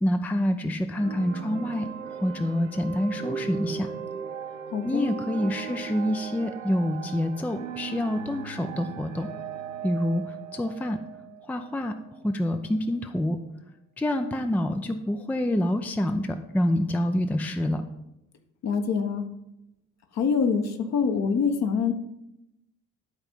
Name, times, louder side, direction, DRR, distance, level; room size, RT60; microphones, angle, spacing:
voice 1, 0.0-3.9 4.8-9.3 9.8-11.0 11.5-12.0 12.2-13.4 14.0-17.8, left 1 dB, 5° left, 7 dB, 0.5 m, -27 dB
sound 1, 0.9-12.2, right 7 dB, 85° right, 0.5 m, -38 dB
voice 2, 4.7-5.1 18.6-19.2 20.1-21.9, left 5 dB, 45° left, 6 dB, 1.1 m, -25 dB
11.0 x 4.4 x 5.3 m, 0.87 s
figure-of-eight pair, 50°, 37 cm